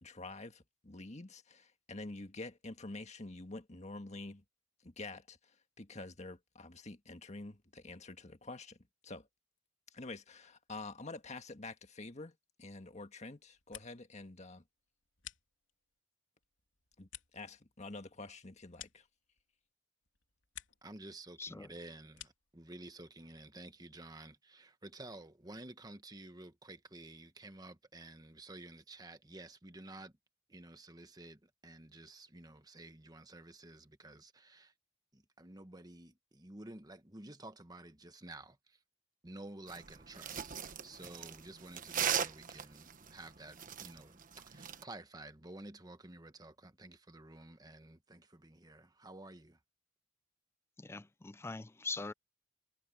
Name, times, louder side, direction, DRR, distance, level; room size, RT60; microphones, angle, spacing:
voice 1, 0.0-4.4 4.8-5.4 5.8-8.8 9.0-9.3 9.9-14.6 17.0-17.1 17.3-19.0, left 2 dB, 35° left, 1.7 m, -47 dB
sound 1, 13.4-14.2 14.5-16.0 16.4-19.7 20.0-21.0 21.3-22.6, left 11 dB, 80° left, 3.3 m, -55 dB
voice 2, 20.8-30.1 30.5-34.7 35.1-38.8 39.2-49.6, right 2 dB, 20° right, 1.4 m, -52 dB
sound 2, 39.7-44.8, right 8 dB, 45° right, 1.2 m, -38 dB
voice 3, 50.8-52.1, left 3 dB, 15° left, 0.4 m, -42 dB
head